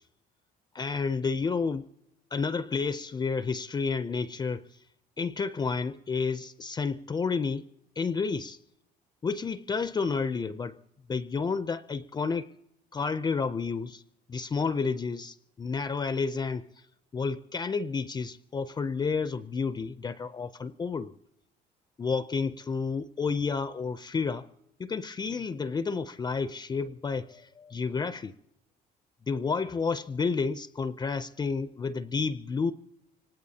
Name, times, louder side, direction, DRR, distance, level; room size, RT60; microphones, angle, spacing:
voice 1, 0.7-1.9 2.3-4.7 5.2-7.7 8.0-8.6 9.2-10.8 11.1-12.5 12.9-14.0 14.3-16.7 17.1-21.1 22.0-24.5 24.8-28.4 29.3-32.7, left 5 dB, 25° left, 0.5 m, -30 dB
25.0 x 19.5 x 2.8 m
cardioid pair, 110°, 17 cm